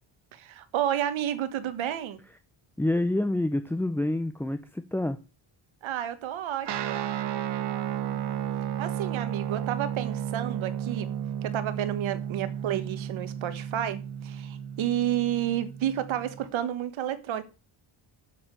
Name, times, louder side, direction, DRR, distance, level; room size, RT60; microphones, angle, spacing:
voice 1, 0.3-2.2 5.8-7.1 8.8-11.1 11.4-17.4, right 11 dB, 75° right, 1.5 m, -31 dB
voice 2, 2.8-5.2 8.1-8.2, left 1 dB, 5° left, 0.4 m, -27 dB
Guitar, 6.6-16.5, right 10 dB, 60° right, 1.1 m, -33 dB
7.2 x 6.6 x 7.6 m
cardioid pair, 135°, 47 cm